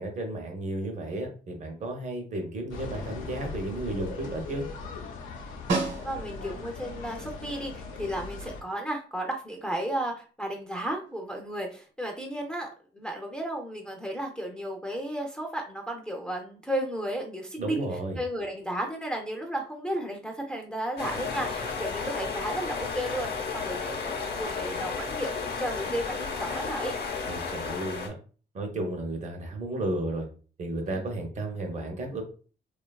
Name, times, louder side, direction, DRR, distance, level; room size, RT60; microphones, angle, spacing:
voice 1, 0.0-4.7 17.6-18.2 27.3-28.1 28.5-30.3 30.6-32.2, right 2 dB, 35° right, 3 dB, 0.6 m, -33 dB
sound 1, 2.7-8.6, left 3 dB, 90° left, 0.6 m, -39 dB
Snare drum, 5.7-6.6 11.1-11.2, right 3 dB, 65° right, 1.0 m, -30 dB
voice 2, 6.0-17.9 18.2-26.9 30.9-31.1, right 1 dB, 5° left, 1 dB, 0.4 m, -34 dB
sound 2, 21.0-28.1, left 5 dB, 55° left, 0.7 m, -33 dB
2.7 x 2.3 x 2.2 m, 0.39 s
cardioid pair, 90°, 20 cm